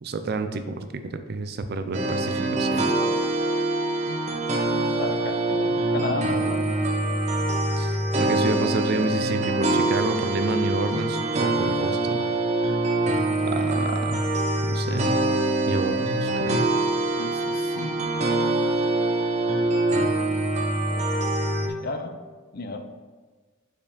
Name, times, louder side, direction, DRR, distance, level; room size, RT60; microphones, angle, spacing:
voice 1, 0.0-2.9 7.8-12.2 13.4-14.2 14.6-15.2 15.7-16.7, right 2 dB, 55° right, 9 dB, 0.5 m, -29 dB
sound 1, 1.9-21.7, right 2 dB, 35° right, 0.9 m, -24 dB
voice 2, 5.0-6.6 17.2-18.2 20.9-21.0 21.8-22.1 22.5-22.8, left 3 dB, 50° left, 7 dB, 0.6 m, -34 dB
5.2 x 5.2 x 5.0 m, 1.4 s
head